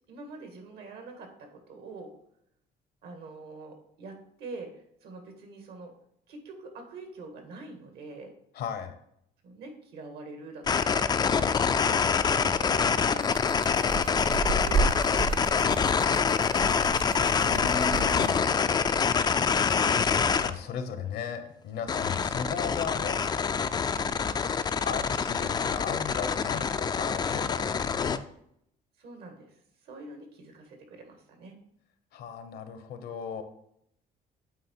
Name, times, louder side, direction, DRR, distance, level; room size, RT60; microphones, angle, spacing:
voice 1, 0.1-2.1 3.0-5.9 6.3-8.3 9.4-14.9 15.2-17.3 22.0-22.4 23.9-24.3 26.2-26.5 29.0-31.6, right 2 dB, 70° right, 4 dB, 1.7 m, -45 dB
voice 2, 8.5-8.9 17.5-18.5 20.4-23.2 24.8-28.2 32.1-33.4, left 6 dB, 70° left, 9 dB, 0.9 m, -36 dB
sound 1, 10.7-20.5 21.9-28.2, left 6 dB, 25° left, 0.3 m, -26 dB
sound 2, 13.2-18.4, right 4 dB, 55° right, 1.0 m, -32 dB
8.4 x 3.6 x 4.4 m, 0.73 s
cardioid pair, 110°, 17 cm